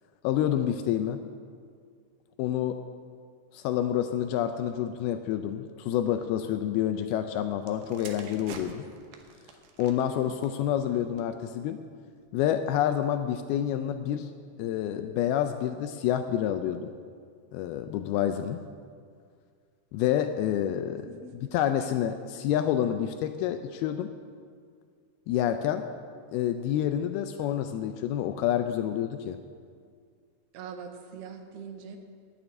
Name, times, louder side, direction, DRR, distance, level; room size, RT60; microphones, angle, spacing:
voice 1, 0.2-1.2 2.4-2.8 3.5-8.9 9.8-11.8 12.3-14.3 14.6-16.9 17.5-18.6 19.9-21.1 21.5-24.1 25.3-25.9 26.3-29.4, left 10 dB, 80° left, 8 dB, 2.3 m, -28 dB
sound 1, 7.6-11.4 12.2-12.5, right 6 dB, 70° right, 2.5 m, -49 dB
voice 2, 20.9-21.3 30.5-32.0, right 6 dB, 90° right, 5 dB, 3.2 m, -42 dB
9.2 x 8.7 x 9.4 m, 2.1 s
omnidirectional pair, 4.8 m